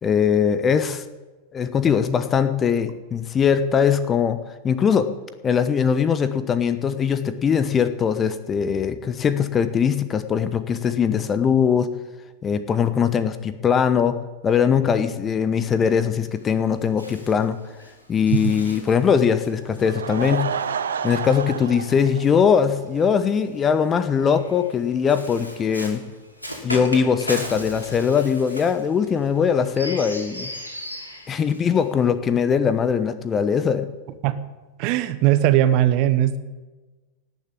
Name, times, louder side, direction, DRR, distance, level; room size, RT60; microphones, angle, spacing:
voice 1, 0.0-1.0 1.5-4.4 4.6-5.1 5.4-11.9 12.4-14.2 14.4-17.6 18.1-20.6 21.0-26.0 26.6-30.5 31.3-33.9, left 7 dB, 25° left, 12 dB, 0.9 m, -21 dB
Bird, 15.7-22.3 23.2-32.0, equal, 85° left, 2.6 m, -38 dB
Laughter / Crowd, 19.6-23.1 23.4-23.5 24.0-24.1 24.3-24.4, right 7 dB, 65° right, 0.9 m, -30 dB
voice 2, 34.8-36.4, right 12 dB, 45° right, 12 dB, 1.0 m, -19 dB
18.0 x 6.8 x 8.6 m, 1.2 s
figure-of-eight pair, 90°, 0 cm